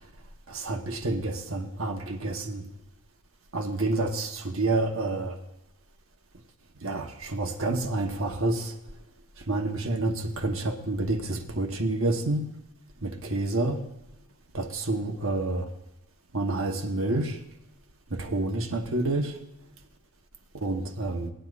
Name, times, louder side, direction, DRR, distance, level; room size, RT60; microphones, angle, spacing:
voice 1, 0.5-2.7 3.5-5.4 6.8-8.7 9.5-12.4 13.0-13.8 14.5-15.7 16.3-17.4 18.1-19.3 20.6-21.3, right 2 dB, 65° right, 4 dB, 1.2 m, -28 dB
19.0 x 10.0 x 2.5 m, 0.86 s
head